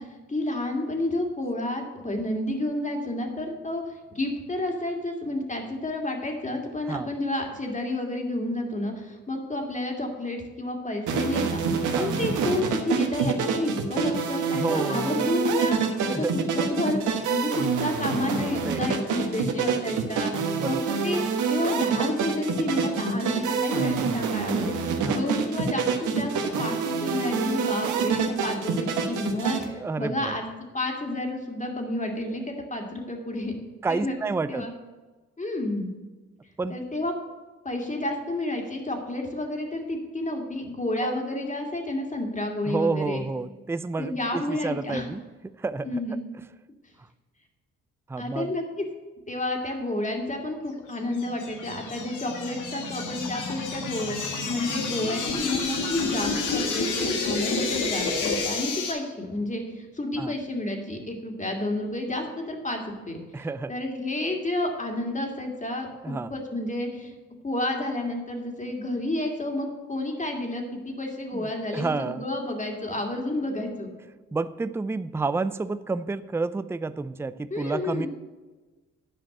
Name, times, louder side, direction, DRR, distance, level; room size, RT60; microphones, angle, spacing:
voice 1, 0.0-21.2 21.5-30.4 30.7-33.5 33.9-34.1 34.5-34.7 35.4-35.9 36.7-37.1 37.6-43.2 44.0-45.0 45.8-46.2 48.2-48.8 49.3-67.1 67.4-73.9 77.5-78.1, left 1 dB, 25° left, 2 dB, 2.5 m, -30 dB
sound 1, 11.1-29.6, right 5 dB, 75° right, 1.3 m, -26 dB
voice 2, 11.9-12.3 14.5-15.3 16.0-16.3 18.6-18.9 20.6-20.8 25.0-25.2 29.7-30.3 33.8-34.7 36.6-36.8 41.0-41.2 42.6-45.9 47.0-47.1 48.1-48.5 60.2-60.3 63.3-63.7 66.0-66.3 71.3-72.3 74.3-78.1, right 3 dB, 10° right, 14 dB, 0.4 m, -30 dB
sound 2, 50.9-58.9, left 3 dB, 80° left, 1.6 m, -29 dB
9.9 x 5.1 x 7.7 m, 1.3 s
supercardioid pair, 55°, 30 cm